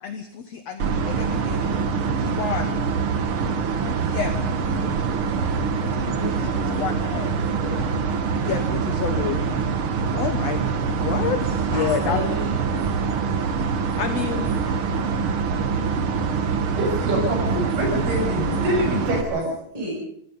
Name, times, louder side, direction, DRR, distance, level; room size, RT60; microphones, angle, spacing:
voice 1, 0.0-2.8 3.8-4.5 4.8-4.9 6.2-7.3 8.4-9.4 10.1-10.6 10.9-12.2 14.0-14.5, left 8 dB, 65° left, 8 dB, 1.8 m, -29 dB
sound 1, 0.8-19.2, right 5 dB, 50° right, 1.7 m, -24 dB
voice 2, 1.4-1.8 5.1-7.8 11.7-15.1 17.5-17.7 18.0-18.3 19.0-19.9, equal, 10° right, -4 dB, 7.1 m, -38 dB
voice 3, 16.8-19.4, equal, 80° right, 1 dB, 8.6 m, -25 dB
27.0 x 17.5 x 5.5 m, 0.69 s
omnidirectional pair, 4.4 m